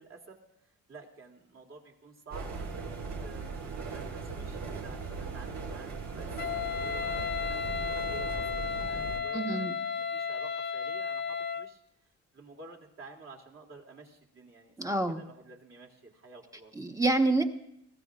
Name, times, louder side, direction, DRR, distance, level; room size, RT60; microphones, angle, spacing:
voice 1, 0.0-11.8 12.3-16.7, right 3 dB, 45° right, 0 dB, 2.8 m, -51 dB
sound 1, 2.3-9.2, right 4 dB, 65° right, 2.2 m, -38 dB
Wind instrument woodwind instrument, 6.4-11.7, left 6 dB, 35° left, 0.7 m, -33 dB
voice 2, 9.3-9.8 14.8-15.2 16.8-17.4, right 2 dB, 10° right, 5 dB, 1.3 m, -27 dB
21.0 x 15.5 x 2.5 m, 0.79 s
cardioid pair, 90°, 30 cm